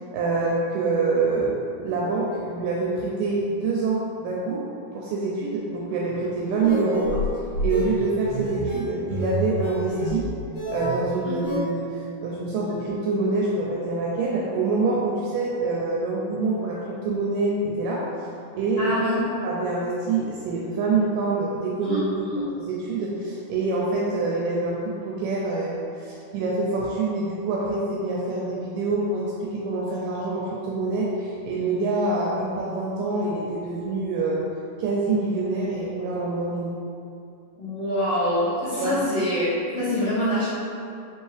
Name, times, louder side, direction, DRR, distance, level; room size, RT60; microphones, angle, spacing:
voice 1, 0.1-4.6 4.9-7.1 7.6-10.3 10.7-18.0 18.5-18.9 19.4-22.2 22.6-34.4 34.8-36.8 38.8-39.0, right 3 dB, 80° right, -4 dB, 1.9 m, -26 dB
sound 1, 6.5-11.6, right 1 dB, 65° left, 1.9 m, -28 dB
voice 2, 18.8-19.2 21.8-22.0 22.3-22.4 37.6-39.5 39.7-40.5, equal, 85° left, -15 dB, 1.2 m, -25 dB
5.4 x 2.9 x 3.2 m, 2.6 s
omnidirectional pair, 4.2 m